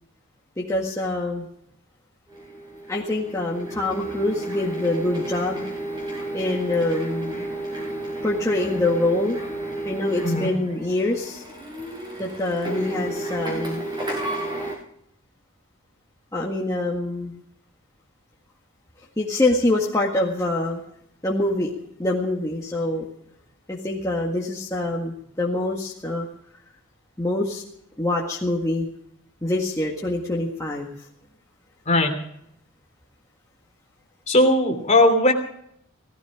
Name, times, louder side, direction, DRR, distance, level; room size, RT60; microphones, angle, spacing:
voice 1, 0.6-1.5 2.9-5.7 6.3-7.5 8.2-9.4 9.8-11.4 12.2-13.8 16.3-17.4 19.2-20.8 21.2-21.7 22.0-23.0 23.7-26.3 27.2-27.6 28.0-28.9 29.4-31.0, left 2 dB, 15° left, -4 dB, 1.9 m, -25 dB
Printer, 2.3-14.8, right 1 dB, 20° right, 6.5 m, -32 dB
voice 2, 34.3-35.3, left 1 dB, 35° left, 4 dB, 3.0 m, -18 dB
18.0 x 15.5 x 5.0 m, 0.70 s
head